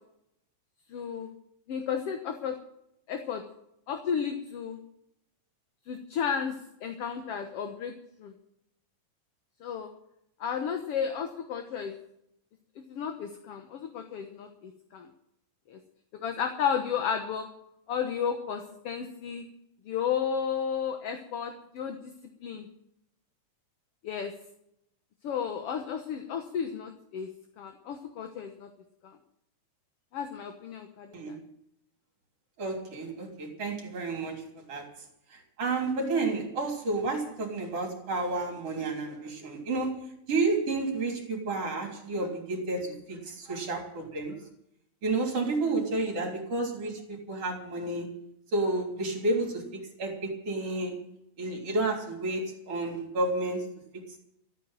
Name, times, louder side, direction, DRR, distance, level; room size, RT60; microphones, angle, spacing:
voice 1, 0.9-1.3 1.7-2.6 3.1-3.4 3.9-4.8 5.9-6.6 6.8-7.9 8.2-8.3 9.6-9.9 10.4-12.0 12.9-15.1 15.7-15.8 16.1-17.5 17.9-19.4 19.9-22.1 22.4-22.7 24.0-24.3 25.2-27.3 27.6-28.7 29.0-29.2 30.1-31.4 52.7-52.8, left 7 dB, 60° left, 5 dB, 1.9 m, -33 dB
voice 2, 32.6-34.9 35.3-40.0 40.3-44.3 45.0-48.1 48.5-51.0 51.4-53.7, right 2 dB, 50° right, 2 dB, 4.4 m, -31 dB
14.0 x 9.3 x 9.0 m, 0.77 s
omnidirectional pair, 3.5 m